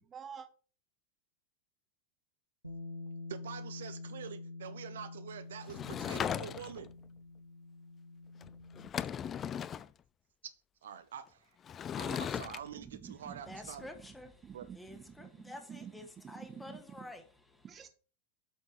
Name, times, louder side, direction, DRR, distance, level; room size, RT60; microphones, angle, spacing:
voice 1, 0.0-0.5 12.8-13.6 14.4-15.9 16.3-16.8 17.6-17.9, right 7 dB, 25° right, 1.3 m, -49 dB
Bass guitar, 2.6-8.9, left 3 dB, 85° right, 1.3 m, -47 dB
voice 2, 3.3-6.9 10.8-11.6 12.0-13.9 14.5-14.7, right 8 dB, 60° right, 0.6 m, -46 dB
Sliding door / Wood, 5.7-6.9 8.4-8.5 8.8-9.9 11.7-12.6, left 8 dB, 25° left, 0.3 m, -37 dB
voice 3, 13.1-17.7, left 1 dB, 5° left, 1.4 m, -50 dB
7.9 x 5.2 x 4.4 m
figure-of-eight pair, 90°, 0 cm